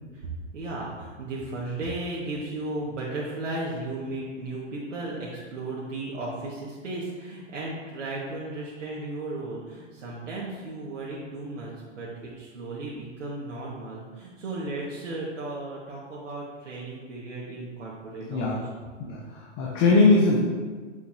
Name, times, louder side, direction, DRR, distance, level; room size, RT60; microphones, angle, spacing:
voice 1, 0.1-12.1 12.4-18.4, right 2 dB, 80° right, -6 dB, 1.9 m, -35 dB
voice 2, 19.0-20.4, left 3 dB, 30° left, -4 dB, 1.3 m, -21 dB
8.7 x 7.0 x 2.9 m, 1.5 s
hypercardioid pair, 130°, 36 cm